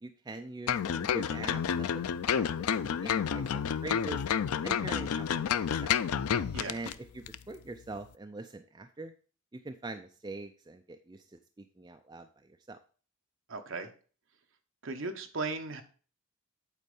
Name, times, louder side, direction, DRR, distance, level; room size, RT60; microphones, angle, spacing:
voice 1, 0.0-4.2 4.6-5.9 6.7-9.1 9.5-12.8, right 2 dB, 20° right, 6 dB, 0.3 m, -43 dB
sound 1, 0.7-6.9 7.3-7.4, left 8 dB, 80° left, 0.4 m, -30 dB
voice 2, 13.5-13.9 14.8-15.8, right 3 dB, 55° right, 6 dB, 0.9 m, -36 dB
8.3 x 4.2 x 5.4 m, 0.40 s
head